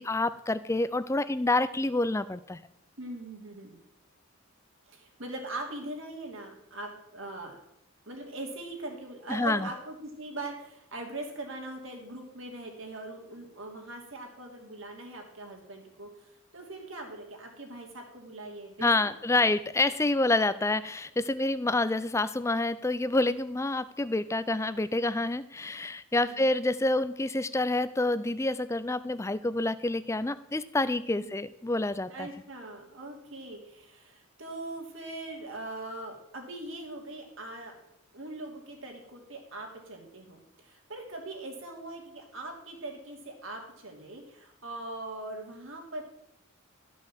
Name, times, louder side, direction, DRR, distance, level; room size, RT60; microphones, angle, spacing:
voice 1, 0.0-2.6 9.3-9.7 18.8-32.3, left 2 dB, 15° left, 15 dB, 0.4 m, -28 dB
voice 2, 3.0-3.8 4.9-7.6 8.1-19.1 26.2-26.5 31.1-31.3 32.1-37.7 38.1-46.0, right 2 dB, 60° right, 1 dB, 2.8 m, -41 dB
13.0 x 6.2 x 7.5 m, 0.82 s
head